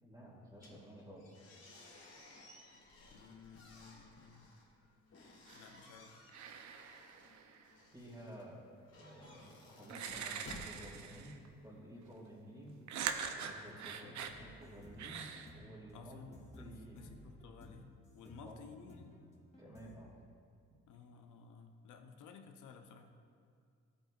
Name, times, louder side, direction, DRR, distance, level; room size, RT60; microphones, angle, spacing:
voice 1, 0.0-1.4 7.9-8.6 9.0-12.8 13.3-15.3 15.5-16.3 16.6-17.1 18.2-18.6 19.6-20.1, equal, 15° right, -7 dB, 2.0 m, -53 dB
sound 1, 0.5-11.7, left 2 dB, 55° left, 2.3 m, -58 dB
voice 2, 3.1-4.4 5.5-6.1 13.6-13.7 14.0-14.5 15.9-19.1 20.9-23.1, left 6 dB, 80° left, 5 dB, 0.9 m, -56 dB
sound 2, 5.5-5.9 6.3-7.7 9.2-9.3 9.9-11.5 12.9-14.4 15.0-15.5, right 7 dB, 70° right, 0.7 m, -43 dB
sound 3, 14.3-20.0, equal, 25° left, 2.3 m, -57 dB
13.5 x 8.4 x 2.5 m, 2.2 s
cardioid pair, 90°, 30 cm